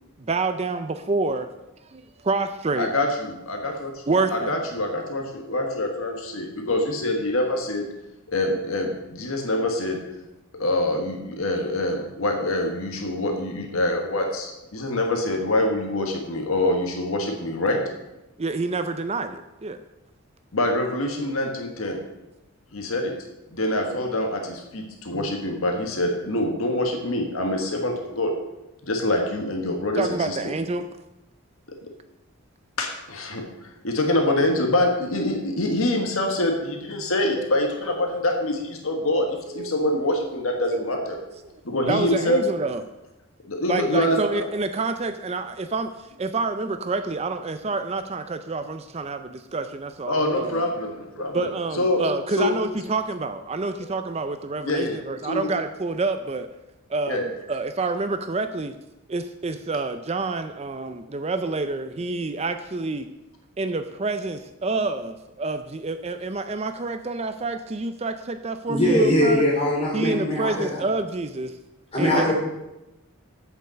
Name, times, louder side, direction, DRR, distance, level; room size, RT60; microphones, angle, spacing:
voice 1, 0.2-1.5 1.9-2.9 4.1-4.5 18.4-19.8 30.0-30.9 37.3-37.5 39.5-39.7 41.4-41.5 41.9-42.8 43.7-50.6 51.3-56.5 56.9-58.7 59.1-63.1 63.6-69.4 69.9-71.6 72.0-72.3, right 3 dB, 30° right, 9 dB, 0.4 m, -28 dB
voice 2, 2.8-4.0 4.3-7.9 8.3-10.0 10.5-17.8 20.5-22.0 22.7-23.1 23.5-28.3 28.8-30.4 32.8-41.2 41.6-42.4 43.5-44.5 50.1-51.5 51.7-52.0 52.4-52.5 54.6-55.0 55.3-55.5 57.1-57.3, left 1 dB, 70° left, 2 dB, 1.5 m, -25 dB
voice 3, 68.7-70.8 71.9-72.3, left 1 dB, 25° left, -4 dB, 3.9 m, -21 dB
8.1 x 6.9 x 7.6 m, 0.96 s
head